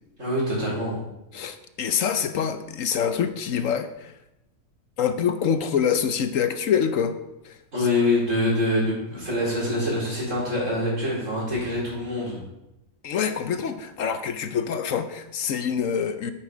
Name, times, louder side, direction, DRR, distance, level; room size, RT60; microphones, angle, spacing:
voice 1, 0.2-1.0 7.7-12.4, left 1 dB, 60° right, -5 dB, 4.6 m, -25 dB
voice 2, 1.3-4.1 5.0-7.1 7.4-7.6 13.0-16.3, left 7 dB, 65° left, 10 dB, 1.1 m, -25 dB
10.0 x 8.8 x 5.0 m, 0.89 s
omnidirectional pair, 1.5 m